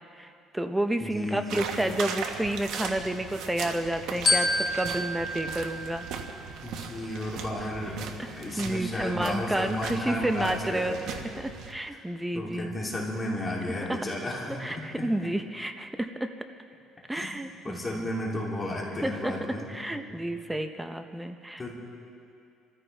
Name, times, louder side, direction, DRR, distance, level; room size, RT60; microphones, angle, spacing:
voice 1, 0.1-6.1 7.6-7.7 8.6-11.0 11.4-12.8 13.9-14.0 14.6-16.3 17.1-18.1 19.0-19.4 19.7-21.6, right 1 dB, 5° right, 7 dB, 0.8 m, -30 dB
voice 2, 1.0-1.9 6.6-8.0 8.3-11.2 12.3-15.3 17.1-17.3 17.6-19.7 20.1-20.3 21.6-21.7, left 1 dB, 25° left, -3 dB, 2.9 m, -33 dB
sound 1, 1.5-11.7, right 6 dB, 70° right, 1.4 m, -38 dB
Glockenspiel, 4.3-6.7, left 2 dB, 45° left, 1.8 m, -29 dB
25.5 x 14.5 x 3.4 m, 2.5 s
cardioid pair, 115°, 0 cm